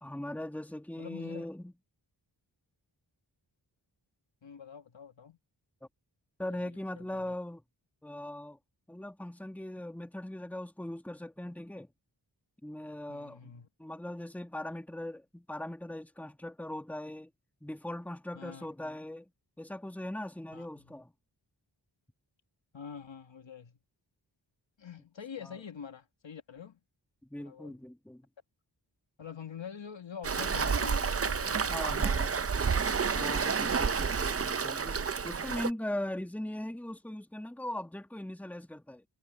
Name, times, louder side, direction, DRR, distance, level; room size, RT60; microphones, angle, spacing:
voice 1, 0.0-1.7 6.4-7.6 8.0-8.6 8.9-11.9 12.6-17.3 17.6-19.2 19.6-21.1 27.3-28.2 31.7-32.3 33.1-35.0 35.2-39.0, left 1 dB, 5° left, 1.5 m, -40 dB
voice 2, 1.0-1.5 4.4-5.4 6.5-7.3 13.1-13.7 18.3-18.7 20.5-21.0 22.7-23.8 24.8-26.8 27.4-27.8 29.2-32.7, left 7 dB, 85° left, 1.8 m, -46 dB
Waves surf, 30.2-35.7, right 5 dB, 35° right, 0.5 m, -30 dB
wide cardioid pair, 70°, 44 cm